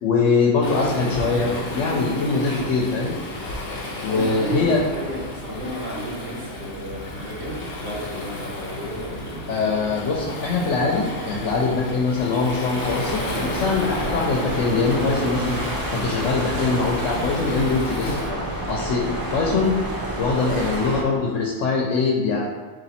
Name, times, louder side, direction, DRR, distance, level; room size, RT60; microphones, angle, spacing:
voice 1, 0.0-3.1 4.0-4.8 9.5-15.6 15.9-19.1 19.3-19.7 20.2-22.5, left 4 dB, 75° left, -1 dB, 1.0 m, -22 dB
Waves surf, 0.6-18.3, left 2 dB, 55° left, 0.9 m, -32 dB
voice 2, 4.1-10.0, right 1 dB, 70° right, -5 dB, 1.5 m, -33 dB
sound 1, 12.8-21.0, right 1 dB, 30° right, 0.4 m, -29 dB
4.1 x 3.1 x 4.1 m, 1.3 s
omnidirectional pair, 1.3 m